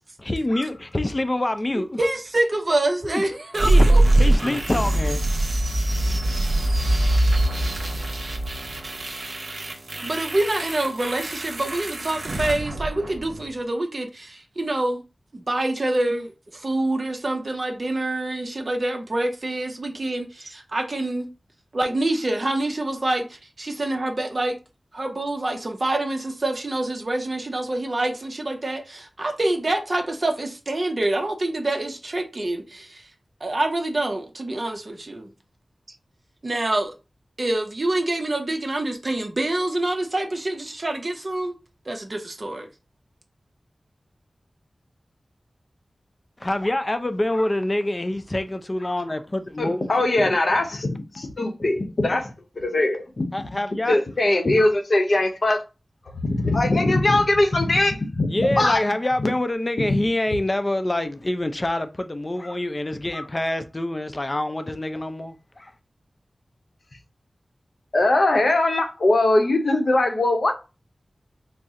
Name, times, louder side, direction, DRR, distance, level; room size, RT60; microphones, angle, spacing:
voice 1, 0.2-2.0 3.1-3.2 3.6-3.9 4.2-5.2 46.4-49.9 50.2-50.3 53.3-54.0 54.6-54.7 58.3-65.7, left 1 dB, 30° left, 0.4 m, -26 dB
voice 2, 1.7-4.0 10.0-15.0 15.3-21.3 21.7-24.6 24.9-33.1 33.4-35.3 36.4-36.9 37.4-41.5 41.9-42.7, right 2 dB, 45° right, 0.6 m, -26 dB
sound 1, 3.5-13.5, right 1 dB, 75° right, 0.8 m, -23 dB
voice 3, 49.6-53.2 53.9-55.6 56.2-58.8 59.2-59.3 59.8-60.0 67.9-70.5, left 2 dB, 65° left, 0.7 m, -21 dB
4.2 x 2.0 x 3.6 m
wide cardioid pair, 70°, 0 cm